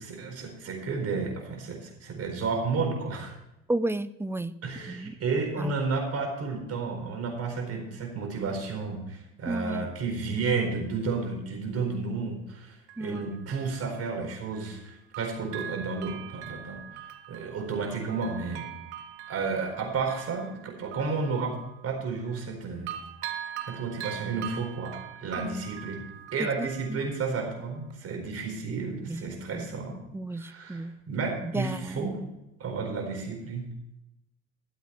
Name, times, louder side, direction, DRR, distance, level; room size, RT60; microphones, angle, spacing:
voice 1, 0.0-3.3 4.6-16.8 17.3-18.7 19.3-21.6 21.8-23.0 23.7-26.0 26.3-30.0 30.3-32.2 32.6-33.6, right 4 dB, 50° right, 2 dB, 4.5 m, -32 dB
voice 2, 3.7-4.5 4.9-5.1 5.6-5.8 9.5-9.9 13.0-13.3 25.4-25.6 26.6-27.0 29.1-29.2 29.5-29.7 30.1-30.9 31.4-32.1, right 2 dB, 10° right, 15 dB, 0.5 m, -33 dB
Bell, 11.9-12.0 12.9-14.8 15.1-22.6 22.9-27.5 27.9-28.0, right 10 dB, 85° right, 0.9 m, -42 dB
13.5 x 7.9 x 5.8 m, 0.89 s
hypercardioid pair, 65°, 32 cm